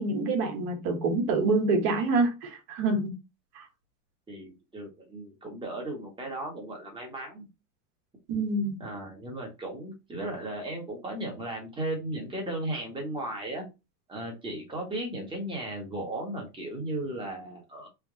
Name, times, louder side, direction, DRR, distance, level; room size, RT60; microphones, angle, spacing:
voice 1, 0.0-3.1 3.5-3.6 8.3-8.8, right 3 dB, 50° right, 2 dB, 1.4 m, -26 dB
voice 2, 4.3-7.5 8.8-13.7 14.1-17.9, right 1 dB, 10° right, 0 dB, 1.2 m, -36 dB
3.5 x 2.3 x 3.7 m, 0.25 s
supercardioid pair, 145°, 45 cm